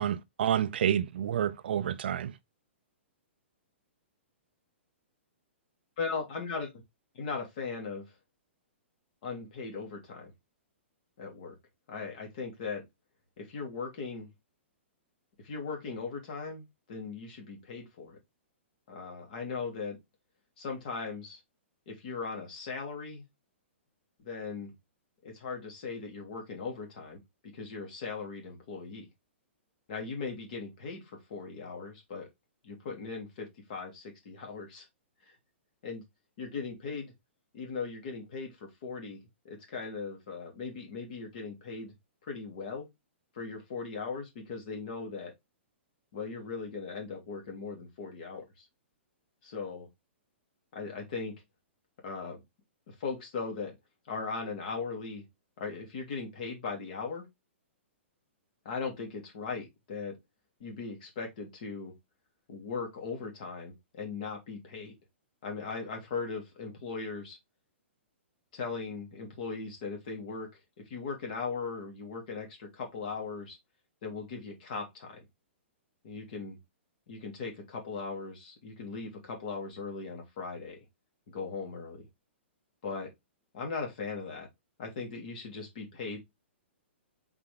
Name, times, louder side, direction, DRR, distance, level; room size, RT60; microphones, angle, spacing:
voice 1, 0.0-2.3, right 9 dB, 55° right, 0.5 m, -29 dB
voice 2, 6.0-6.7 7.1-8.0 9.2-10.3 11.2-11.5 11.9-12.8 13.4-14.3 15.4-18.2 18.9-20.0 20.6-21.4 21.9-23.2 24.2-24.7 25.2-29.1 29.9-32.3 32.6-34.8 35.8-36.0 36.4-37.1 37.5-41.9 42.2-42.9 43.3-45.3 46.1-48.7 49.4-49.9 50.7-51.3 52.0-52.4 52.9-53.7 54.1-55.2 55.6-57.2 58.6-60.1 60.6-61.9 62.5-64.9 65.4-67.4 68.5-70.5 70.9-73.6 74.0-75.2 76.0-76.6 77.1-80.8 81.3-82.1 82.8-83.1 83.5-84.5 84.8-86.2, left 4 dB, 40° left, 3.3 m, -38 dB
5.7 x 4.5 x 3.8 m
hypercardioid pair, 170°, 7 cm